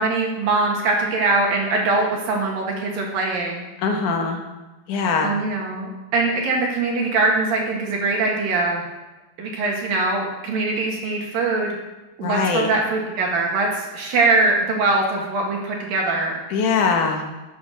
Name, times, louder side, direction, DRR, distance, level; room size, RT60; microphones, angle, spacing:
voice 1, 0.0-3.6 5.2-8.8 9.4-11.7 12.2-16.4, right 3 dB, 60° right, 0 dB, 3.1 m, -22 dB
voice 2, 3.8-4.4 4.9-5.3 12.2-12.7 16.5-17.2, left 5 dB, 60° left, 3 dB, 2.3 m, -21 dB
12.0 x 8.6 x 6.4 m, 1.1 s
omnidirectional pair, 5.1 m